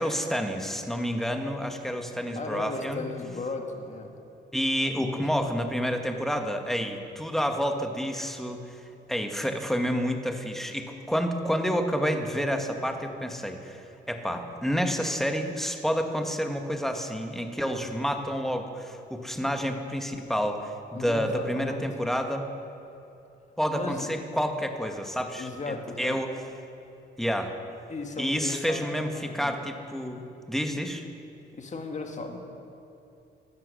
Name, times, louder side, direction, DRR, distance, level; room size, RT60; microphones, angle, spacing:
voice 1, 0.0-3.0 4.5-8.8 9.1-22.5 23.6-26.3 27.2-27.5 28.2-31.0, equal, ahead, 5 dB, 1.4 m, -29 dB
voice 2, 2.4-4.1 4.8-5.3 20.9-21.8 23.7-24.1 25.4-26.2 27.9-29.6 31.5-32.4, left 3 dB, 35° left, 4 dB, 1.8 m, -36 dB
15.0 x 10.5 x 6.4 m, 2.8 s
cardioid pair, 90°, 20 cm